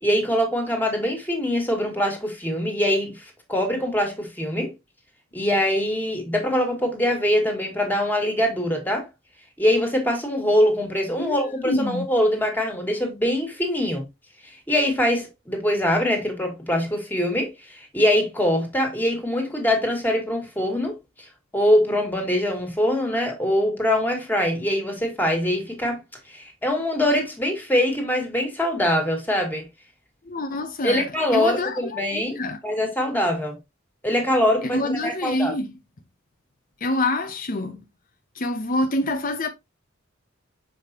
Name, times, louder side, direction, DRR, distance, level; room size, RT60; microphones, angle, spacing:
voice 1, 0.0-3.1 3.5-4.7 5.3-9.1 9.6-14.0 14.7-21.0 21.5-26.0 26.3-29.6 30.8-32.4 32.6-33.6 34.0-35.6, left 1 dB, 10° left, 2.0 m, -23 dB
voice 2, 11.6-12.1 30.2-31.8 32.1-32.6 34.7-35.7 36.8-37.8 38.3-39.5, left 2 dB, 45° left, 0.7 m, -26 dB
6.7 x 5.2 x 2.8 m
head